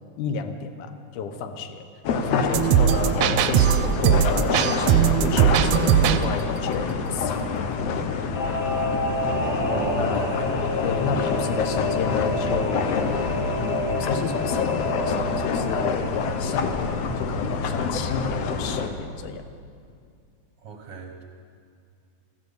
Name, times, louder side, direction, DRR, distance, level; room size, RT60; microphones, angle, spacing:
voice 1, 0.0-1.9 2.1-7.4 9.9-10.2 10.8-13.1 13.6-19.5, left 5 dB, 90° left, 8 dB, 2.5 m, -31 dB
sound 1, 2.0-18.9, left 5 dB, 65° left, 1.8 m, -27 dB
sound 2, 2.5-6.3, right 9 dB, 75° right, 1.6 m, -19 dB
Singing / Musical instrument, 8.3-18.4 18.7-18.8, left 2 dB, 40° left, 1.6 m, -29 dB
voice 2, 9.7-10.6 20.6-21.2, right 4 dB, 60° right, 3 dB, 1.1 m, -35 dB
14.5 x 12.5 x 8.0 m, 2.3 s
omnidirectional pair, 3.5 m